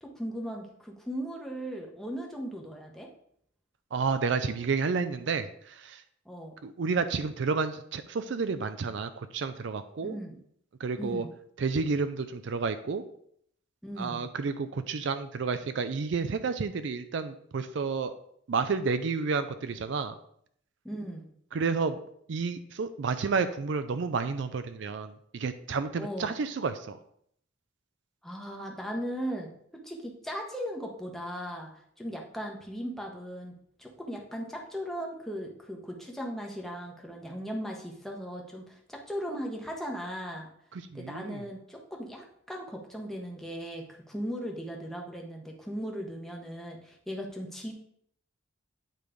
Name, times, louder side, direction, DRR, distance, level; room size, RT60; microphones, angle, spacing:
voice 1, 0.0-3.1 6.2-6.5 10.0-10.4 11.0-11.3 13.8-14.2 20.8-21.2 26.0-26.4 28.2-29.5 29.8-31.7 32.0-33.5 33.8-40.5 40.9-47.7, equal, ahead, 0 dB, 1.0 m, -37 dB
voice 2, 3.9-6.0 6.6-10.2 10.8-11.3 11.6-13.0 14.0-18.1 18.5-20.2 21.5-22.0 22.3-27.0 40.9-41.4, right 4 dB, 60° right, 11 dB, 0.4 m, -30 dB
9.0 x 3.2 x 5.0 m, 0.68 s
head